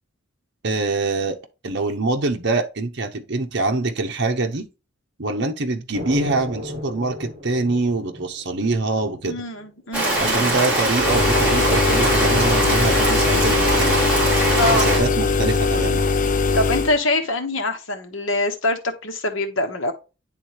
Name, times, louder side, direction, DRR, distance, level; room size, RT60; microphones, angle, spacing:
voice 1, 0.6-1.4 1.6-4.7 5.2-9.4 10.2-14.0 14.6-16.0, right 3 dB, 60° right, 0.9 m, -24 dB
sound 1, 5.9-9.6, left 1 dB, 35° right, 2.0 m, -34 dB
voice 2, 9.2-10.6 14.5-14.9 16.5-19.9, left 2 dB, 80° left, 1.3 m, -24 dB
Rain, 9.9-15.0, right 2 dB, 5° right, 3.1 m, -21 dB
sound 2, 11.0-17.0, left 4 dB, 40° left, 0.6 m, -21 dB
9.9 x 3.7 x 3.0 m
head